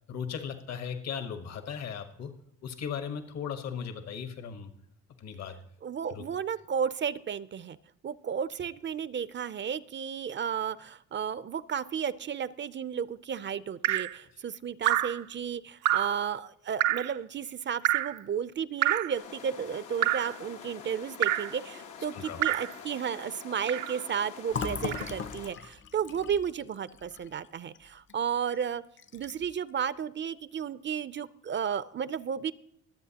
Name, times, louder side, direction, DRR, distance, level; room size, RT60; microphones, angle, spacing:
voice 1, 0.1-2.3 2.6-4.7 5.2-5.6 6.1-6.2 22.1-22.4, left 7 dB, 60° left, 8 dB, 1.2 m, -37 dB
voice 2, 5.8-7.8 8.0-28.8 29.1-32.5, right 7 dB, 40° right, 17 dB, 0.5 m, -33 dB
Drip, 13.8-14.2 14.8-15.2 15.8-16.2 16.8-17.1 17.8-18.2 18.8-19.2 20.0-20.4 21.2-21.5 22.4-22.7 23.7-24.0 24.9-25.1, right 14 dB, 85° right, 0.6 m, -27 dB
sound 1, 19.1-25.5, left 7 dB, 85° left, 1.3 m, -46 dB
Fill (with liquid), 24.5-28.2 28.5-28.7 29.0-29.6, left 5 dB, 40° left, 0.6 m, -38 dB
23.0 x 8.0 x 2.9 m, 0.75 s
cardioid pair, 90°, 30 cm